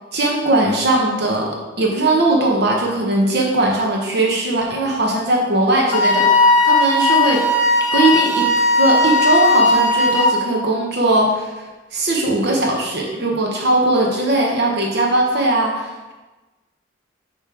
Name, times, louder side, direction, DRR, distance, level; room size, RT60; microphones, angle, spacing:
voice 1, 0.1-7.4 7.9-8.5 8.7-11.7 11.9-16.1, right 2 dB, 60° right, -1 dB, 0.8 m, -19 dB
Wind instrument woodwind instrument, 5.9-10.4, left 2 dB, 40° left, 1.0 m, -16 dB
6.9 x 3.0 x 4.8 m, 1.2 s
head